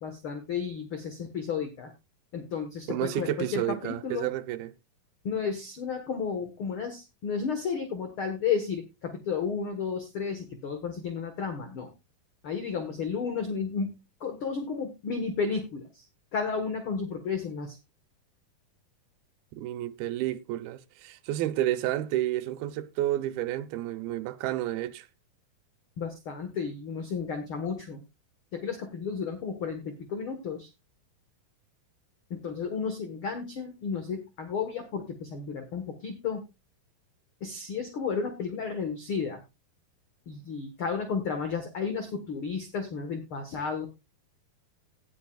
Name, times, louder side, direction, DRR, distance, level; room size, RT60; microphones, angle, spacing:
voice 1, 0.0-1.9 2.3-4.3 5.2-11.9 12.4-16.0 16.3-17.8 26.0-28.0 28.5-30.7 32.3-36.4 37.4-39.4 40.3-43.9, left 5 dB, 55° left, 1.6 m, -33 dB
voice 2, 2.9-4.7 19.5-25.1, right 14 dB, 90° right, 2.7 m, -31 dB
18.5 x 7.7 x 2.3 m
omnidirectional pair, 4.2 m